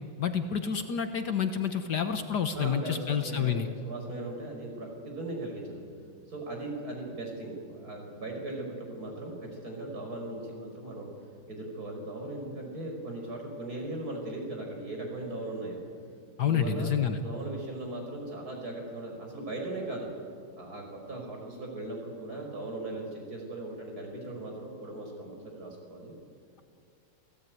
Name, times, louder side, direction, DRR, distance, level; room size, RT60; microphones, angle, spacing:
voice 1, 0.2-3.7 16.4-17.2, left 7 dB, 60° left, 8 dB, 1.6 m, -28 dB
voice 2, 2.5-5.8 6.3-11.1 11.5-15.8 16.4-20.1 20.6-26.1, right 2 dB, 45° right, 1 dB, 5.8 m, -38 dB
28.0 x 17.0 x 9.4 m, 2.3 s
omnidirectional pair, 2.2 m